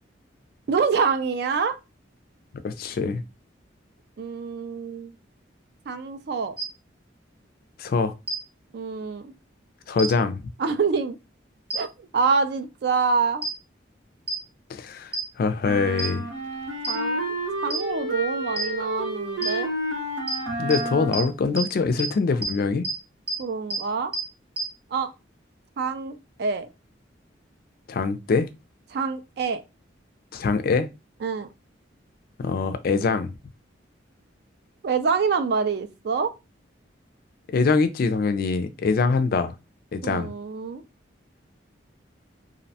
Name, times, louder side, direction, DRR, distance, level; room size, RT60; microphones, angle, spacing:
voice 1, 0.7-1.8 4.2-5.2 5.9-6.5 8.7-9.3 10.6-11.2 11.7-13.4 16.9-17.4 17.6-19.7 23.4-24.1 24.9-25.1 25.8-26.7 28.9-29.6 31.2-31.5 34.8-36.3 40.0-40.8, right 5 dB, 55° right, 0.3 m, -26 dB
voice 2, 2.6-3.2 7.8-8.1 9.9-10.4 14.7-16.3 20.6-22.9 27.9-28.5 30.3-30.9 32.4-33.4 37.5-39.5 39.9-40.3, left 4 dB, 50° left, 0.3 m, -24 dB
sound 1, 6.6-6.7 8.3-8.4 10.0-10.1 11.7-11.8 13.4-13.5 14.3-14.4 15.1-15.2 16.0-16.1 16.8-16.9 17.7-17.8 18.6-18.7 19.4-19.5 20.3-20.4 20.7-20.8 21.1-21.2 21.6-21.7 22.0-22.1 22.4-22.5 22.8-22.9 23.3-23.4 23.7-23.8 24.1-24.2 24.6-24.7, right 1 dB, 30° right, 0.8 m, -27 dB
sound 2, 15.6-21.4, right 1 dB, 85° right, 1.0 m, -30 dB
2.6 x 2.1 x 2.7 m
head